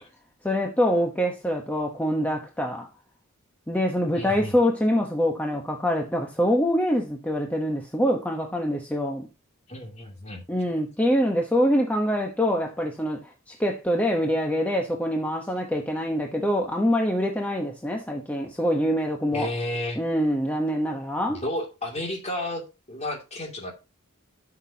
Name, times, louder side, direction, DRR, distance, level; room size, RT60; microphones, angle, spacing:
voice 1, 0.4-2.9 3.7-9.3 10.5-13.2 13.5-19.5 20.0-21.4, equal, 10° left, 1.0 m, -25 dB
voice 2, 4.1-4.6 9.7-10.4 19.3-20.0 21.3-23.7, left 1 dB, 30° left, 2.5 m, -32 dB
12.5 x 5.9 x 2.8 m
head